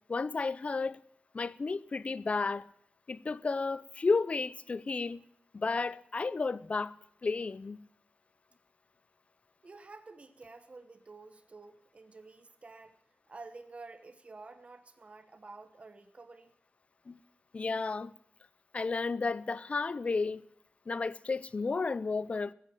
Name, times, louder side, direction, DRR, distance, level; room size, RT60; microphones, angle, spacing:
voice 1, 0.1-1.0 1.3-2.7 3.1-5.2 5.5-7.8 17.1-17.2 17.5-18.1 18.7-20.5 20.9-22.5, left 4 dB, 40° left, 0.5 m, -32 dB
voice 2, 9.6-13.0 13.3-16.5, right 3 dB, 40° right, 1.0 m, -50 dB
15.5 x 7.4 x 9.0 m
wide cardioid pair, 115°, 3 cm